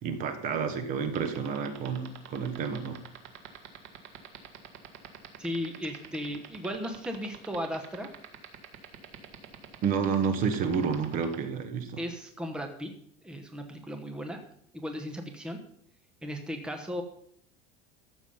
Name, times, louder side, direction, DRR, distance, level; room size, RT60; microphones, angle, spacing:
voice 1, 0.0-3.0 9.8-12.0, right 6 dB, 45° right, 9 dB, 1.3 m, -30 dB
sound 1, 1.0-11.4, right 11 dB, 90° right, 1.9 m, -44 dB
voice 2, 5.4-8.1 12.0-12.9 13.2-14.4 14.7-15.6 16.2-17.0, equal, 5° right, 5 dB, 1.1 m, -36 dB
13.5 x 7.1 x 5.6 m, 0.66 s
cardioid pair, 160°, 20 cm